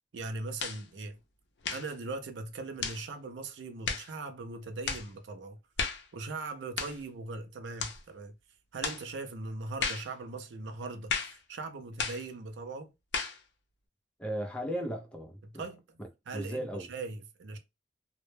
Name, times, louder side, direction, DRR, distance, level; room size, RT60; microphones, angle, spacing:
voice 1, 0.1-1.2 1.7-5.6 6.1-8.3 8.7-12.9 15.4-15.8 16.3-17.6, right 3 dB, 80° right, 0.4 m, -40 dB
sound 1, 0.6-0.8 1.6-1.9 2.8-3.0 3.8-4.1 4.8-5.1 5.8-6.1 6.8-7.0 7.8-8.0 8.8-9.0 9.8-10.1 11.1-11.4 12.0-12.2 13.1-13.4, left 5 dB, 75° left, 0.5 m, -34 dB
voice 2, 14.2-15.7 16.0-16.1 16.3-16.9, equal, 5° left, 0.4 m, -36 dB
2.1 x 2.1 x 3.0 m
head